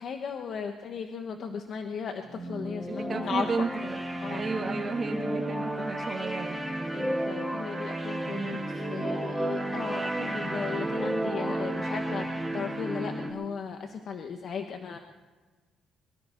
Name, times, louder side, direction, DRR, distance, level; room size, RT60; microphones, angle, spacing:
voice 1, 0.0-3.7 4.2-4.4 6.9-15.0, left 6 dB, 55° left, 5 dB, 1.2 m, -36 dB
sound 1, 2.2-13.3, right 1 dB, 5° right, 2.3 m, -32 dB
voice 2, 2.9-4.0 4.3-6.6 8.2-8.6, right 4 dB, 35° right, 3 dB, 2.2 m, -33 dB
23.5 x 13.0 x 4.5 m, 1.3 s
cardioid pair, 120°, 0 cm